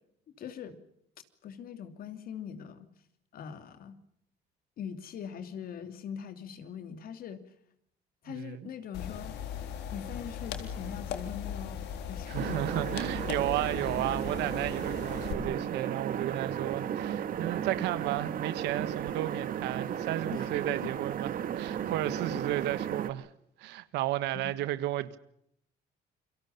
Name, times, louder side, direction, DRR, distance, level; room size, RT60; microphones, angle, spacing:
voice 1, 0.4-0.8 1.4-2.9 3.3-4.0 4.8-7.5 8.2-9.3 9.9-12.6 13.6-13.7 15.4-15.6 16.6-16.7 20.3-20.9 22.2-22.4 24.3-24.5, left 8 dB, 60° left, 2.9 m, -42 dB
voice 2, 8.4-8.7 12.3-23.3 23.6-25.2, right 14 dB, 85° right, 1.6 m, -33 dB
sound 1, 8.9-15.3, left 8 dB, 80° left, 3.8 m, -38 dB
sound 2, 12.3-23.1, right 9 dB, 55° right, 1.8 m, -34 dB
29.0 x 23.5 x 5.7 m
cardioid pair, 110°, 17 cm